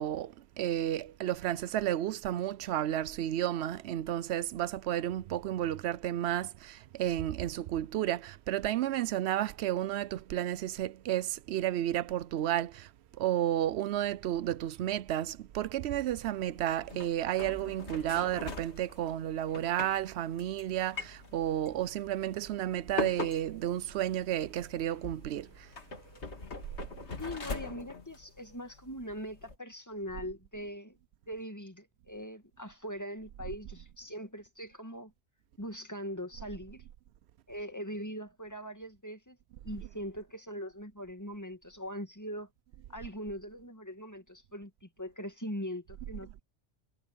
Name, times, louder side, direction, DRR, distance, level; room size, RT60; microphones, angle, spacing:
voice 1, 0.0-12.9 13.2-25.7, right 12 dB, 75° right, 0.8 m, -32 dB
sound 1, 15.9-29.5, left 3 dB, 90° left, 2.4 m, -43 dB
voice 2, 27.2-31.0 31.3-35.1 35.6-36.8 37.5-39.4 39.6-42.5 42.9-46.4, equal, 15° left, 2.1 m, -41 dB
omnidirectional pair, 1.1 m